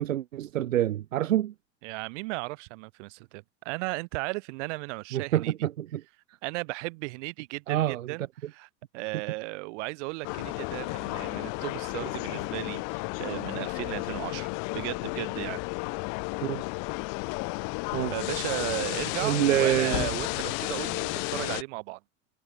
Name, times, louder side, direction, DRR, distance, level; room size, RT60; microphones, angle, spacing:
voice 1, 0.0-1.5 5.1-6.0 7.7-8.1 16.4-16.6 17.9-18.1 19.2-20.1, right 12 dB, 85° right, 1.0 m, -26 dB
voice 2, 1.8-5.7 6.4-8.7 8.9-15.6 18.1-22.0, right 26 dB, 65° right, 2.0 m, -35 dB
sound 1, 10.2-21.6, left 36 dB, 55° left, 0.9 m, -32 dB
hypercardioid pair, 90°, 38 cm